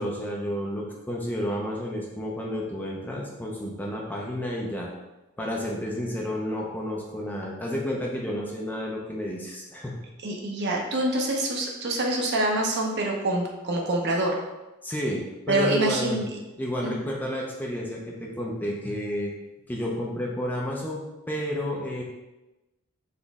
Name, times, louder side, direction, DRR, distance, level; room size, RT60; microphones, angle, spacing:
voice 1, 0.0-4.9 5.4-10.0 14.8-16.2 16.6-19.3 19.7-22.0, equal, 10° left, -2 dB, 0.4 m, -31 dB
voice 2, 10.2-14.3 15.5-16.4 16.8-17.0, right 2 dB, 50° right, 1 dB, 0.7 m, -26 dB
4.1 x 3.0 x 3.5 m, 1.0 s
head